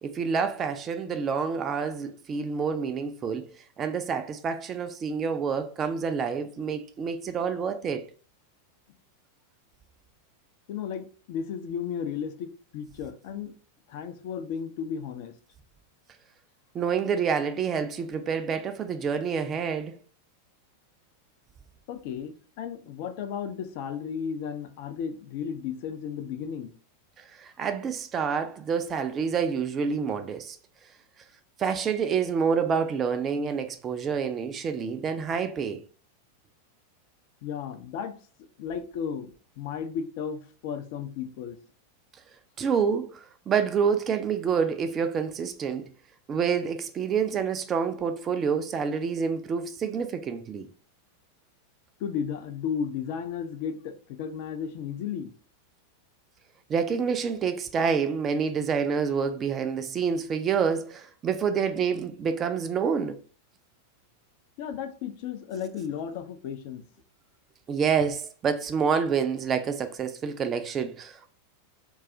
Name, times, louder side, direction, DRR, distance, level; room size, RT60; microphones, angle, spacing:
voice 1, 0.0-3.5 3.8-8.1 16.7-20.0 27.2-30.6 31.6-35.8 42.6-45.9 46.3-50.7 56.7-63.2 67.7-71.3, right 6 dB, 25° right, 0.3 m, -28 dB
voice 2, 10.7-13.5 13.9-15.3 21.9-26.7 37.4-41.6 52.0-55.3 64.6-66.8, left 7 dB, 50° left, 0.4 m, -34 dB
2.3 x 2.3 x 3.8 m
figure-of-eight pair, 90°, 0 cm